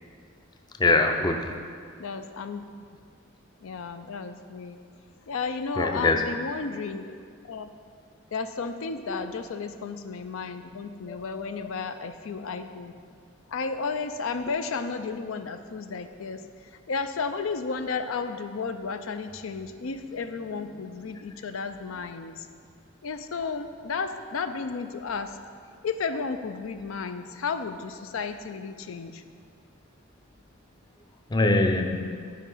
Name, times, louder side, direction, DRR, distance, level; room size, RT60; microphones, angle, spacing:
voice 1, 0.8-1.5 5.8-6.2 9.1-9.4 11.1-11.7 20.6-20.8 21.1-21.2 31.3-32.4, left 2 dB, 20° left, 5 dB, 0.4 m, -25 dB
voice 2, 2.0-2.6 3.6-4.8 5.3-7.2 7.4-7.7 8.3-12.9 13.5-16.4 16.9-22.4 23.0-25.3 25.8-29.2, left 4 dB, 85° left, 9 dB, 0.5 m, -33 dB
11.0 x 5.1 x 5.5 m, 2.2 s
head